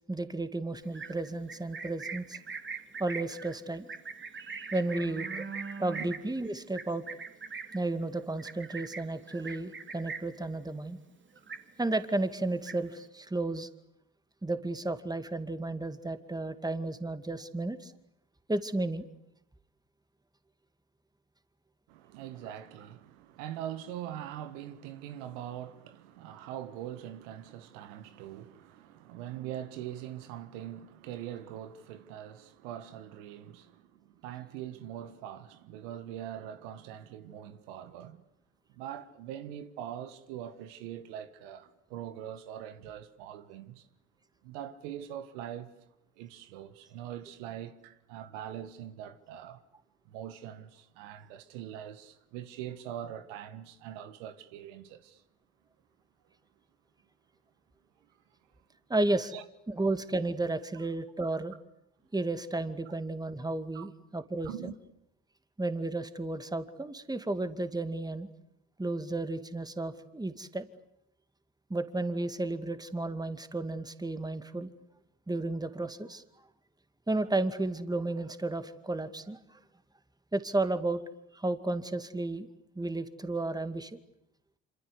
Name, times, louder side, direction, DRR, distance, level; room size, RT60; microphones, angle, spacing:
voice 1, 0.1-2.4 3.0-3.9 4.7-5.5 5.8-7.0 7.7-11.0 11.8-13.7 14.4-17.9 18.5-19.0 58.9-59.3 59.7-61.5 62.1-64.7 65.6-68.3 68.8-70.7 71.7-74.7 75.3-76.2 77.1-79.6 80.3-81.0 81.3-82.5 82.8-83.9, right 2 dB, 10° right, 2.2 m, -33 dB
Livestock farm animals working animals, 0.8-10.4 10.8-11.1 11.3-12.0 12.4-13.1, right 5 dB, 30° right, 3.1 m, -42 dB
voice 2, 21.9-38.2 38.7-43.9 44.4-45.7 46.2-49.6 50.1-55.2 59.3-59.4 63.7-63.8 64.4-64.7, right 11 dB, 80° right, 1.7 m, -42 dB
26.5 x 26.5 x 8.2 m
hypercardioid pair, 60°, 37 cm